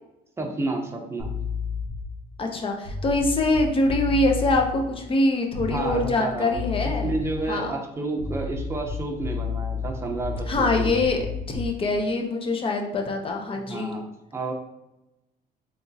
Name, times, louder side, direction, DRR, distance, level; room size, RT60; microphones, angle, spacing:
voice 1, 0.4-1.3 5.7-10.9 13.7-14.0 14.3-14.5, right 2 dB, 15° right, 1 dB, 0.7 m, -30 dB
sound 1, 1.2-2.2 2.8-4.7 5.5-6.2 6.5-7.5 8.1-11.8, left 5 dB, 65° left, 0.9 m, -31 dB
voice 2, 2.4-7.2 7.5-7.7 10.5-11.2 11.5-14.0, left 2 dB, 30° left, 3 dB, 0.6 m, -24 dB
3.5 x 2.9 x 2.7 m, 0.93 s
cardioid pair, 110°, 17 cm